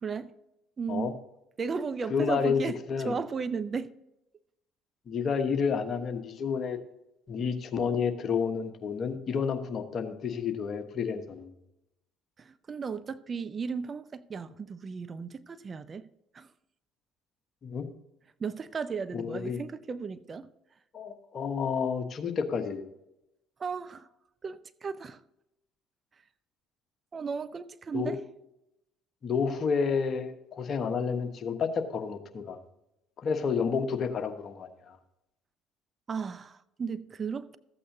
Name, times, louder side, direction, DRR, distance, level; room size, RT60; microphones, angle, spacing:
voice 1, 0.0-0.3 0.8-1.1 1.6-2.8 3.0-3.9 12.4-16.1 16.3-16.5 18.4-20.5 23.6-24.1 24.4-25.2 27.1-28.2 36.1-37.6, right 5 dB, 35° right, 0.6 m, -35 dB
voice 2, 2.1-2.6 2.9-3.2 5.1-6.8 7.3-11.5 17.6-17.9 19.1-19.7 20.9-22.8 27.9-28.2 29.2-32.6 33.2-35.0, left 6 dB, 45° left, 1.2 m, -30 dB
14.0 x 8.4 x 2.8 m
hypercardioid pair, 60°, 0 cm